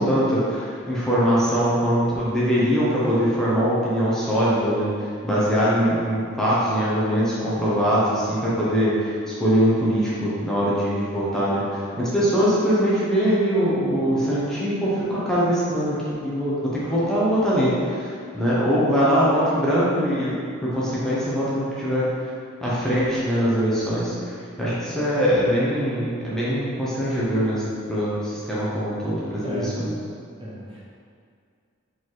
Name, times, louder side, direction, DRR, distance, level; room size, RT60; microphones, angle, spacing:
voice 1, 0.0-16.0 16.2-20.3 20.6-22.3 22.6-29.9, equal, 5° left, -9 dB, 1.0 m, -22 dB
voice 2, 29.4-29.7 30.4-30.8, left 1 dB, 25° right, -7 dB, 1.1 m, -34 dB
5.0 x 4.1 x 4.8 m, 2.3 s
head